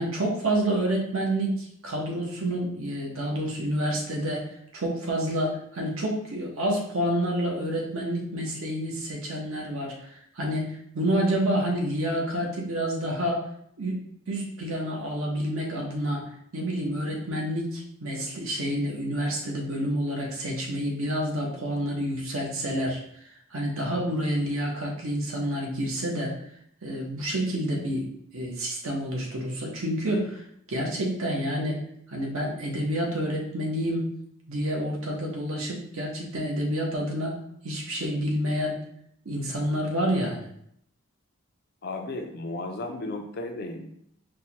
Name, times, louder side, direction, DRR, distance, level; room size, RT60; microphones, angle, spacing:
voice 1, 0.0-13.5 13.8-14.0 14.3-23.0 23.5-26.3 26.8-31.8 32.1-34.1 34.5-37.4 37.6-38.8 39.2-40.5, equal, 65° right, -1 dB, 0.9 m, -28 dB
voice 2, 41.8-43.9, left 2 dB, 45° left, 4 dB, 0.4 m, -34 dB
4.3 x 2.2 x 2.9 m, 0.71 s
head